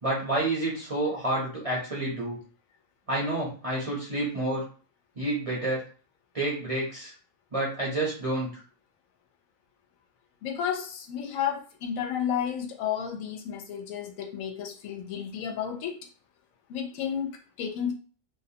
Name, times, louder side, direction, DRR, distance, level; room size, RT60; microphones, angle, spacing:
voice 1, 0.0-2.4 3.1-4.6 5.2-5.8 6.3-7.1 7.5-8.5, right 2 dB, 35° right, -5 dB, 0.6 m, -29 dB
voice 2, 10.4-16.0 16.7-17.9, left 8 dB, 85° left, 4 dB, 1.0 m, -32 dB
2.5 x 2.1 x 2.7 m, 0.39 s
omnidirectional pair, 1.4 m